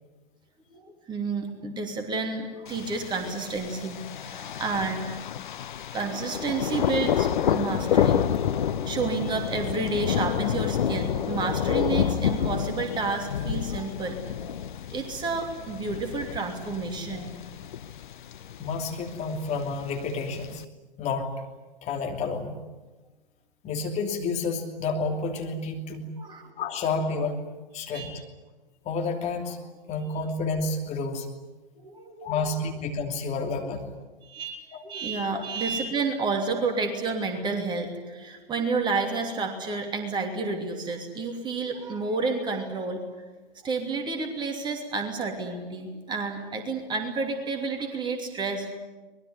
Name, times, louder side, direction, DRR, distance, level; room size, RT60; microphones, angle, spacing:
voice 1, 0.7-4.0 4.3-5.1 5.9-8.2 8.9-14.2 14.5-17.3 26.2-26.5 27.9-28.2 31.8-32.5 34.2-43.1 43.6-48.8, right 4 dB, 15° right, 4 dB, 2.9 m, -30 dB
Thunder, 2.7-20.6, left 9 dB, 55° left, 1.0 m, -29 dB
voice 2, 18.6-20.6 21.0-21.3 21.8-22.6 23.6-26.1 26.6-27.4 27.7-28.2 28.8-29.6 29.9-31.3 32.2-33.9 34.7-34.8 35.2-35.5, left 3 dB, 20° left, 2 dB, 3.0 m, -30 dB
24.5 x 21.0 x 9.7 m, 1.2 s
figure-of-eight pair, 115°, 30 cm